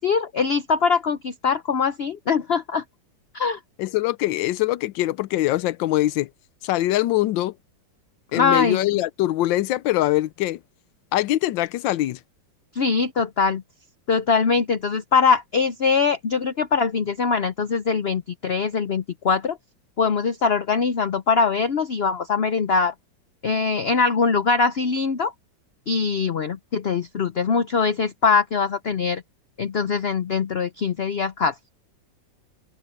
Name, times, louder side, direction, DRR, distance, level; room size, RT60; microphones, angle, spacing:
voice 1, 0.0-2.8 3.3-3.6 8.3-8.8 12.8-13.6 14.1-19.6 20.0-22.9 23.4-25.3 25.9-29.2 29.6-31.5, left 5 dB, 60° left, 0.6 m, -22 dB
voice 2, 3.8-6.3 6.6-7.5 8.3-10.6 11.1-12.2, left 15 dB, 90° left, 1.3 m, -23 dB
open air
omnidirectional pair, 2.0 m